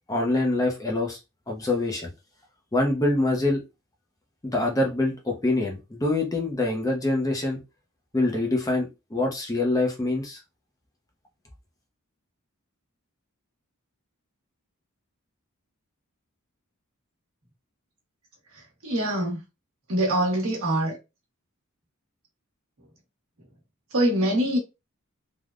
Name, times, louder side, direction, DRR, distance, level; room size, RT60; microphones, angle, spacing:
voice 1, 0.1-1.2 1.5-2.1 2.7-3.6 4.5-7.6 8.1-10.4, left 2 dB, 15° left, 0.5 m, -25 dB
voice 2, 18.8-19.4 19.9-21.0 23.9-24.6, right 1 dB, 70° right, 1.1 m, -24 dB
3.3 x 2.1 x 2.4 m
head